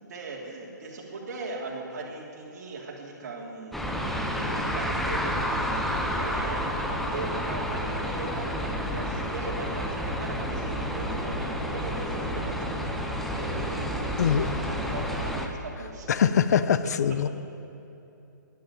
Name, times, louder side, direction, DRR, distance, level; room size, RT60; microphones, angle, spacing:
voice 1, 0.1-5.9 6.2-13.0 13.3-15.3 15.6-16.1, right 3 dB, 55° right, -2 dB, 3.1 m, -39 dB
sound 1, 3.7-15.5, equal, ahead, 0.8 m, -30 dB
voice 2, 14.2-14.5 16.1-17.3, left 8 dB, 55° left, 13 dB, 0.6 m, -23 dB
11.5 x 11.0 x 7.1 m, 2.9 s
hypercardioid pair, 145°, 11 cm